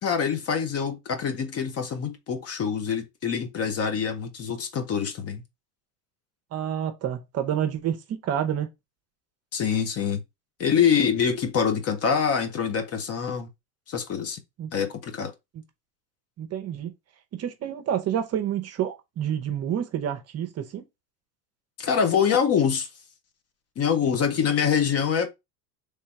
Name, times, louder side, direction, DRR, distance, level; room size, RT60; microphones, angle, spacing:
voice 1, 0.0-5.4 9.5-10.2 10.6-13.5 13.9-14.4 14.7-15.3 21.8-22.9 23.8-25.3, left 7 dB, 35° left, 0.8 m, -25 dB
voice 2, 6.5-8.0 8.2-8.7 14.6-14.7 16.4-16.9 17.4-20.8, right 9 dB, 35° right, 0.7 m, -28 dB
3.3 x 2.8 x 4.6 m
supercardioid pair, 125°, 42 cm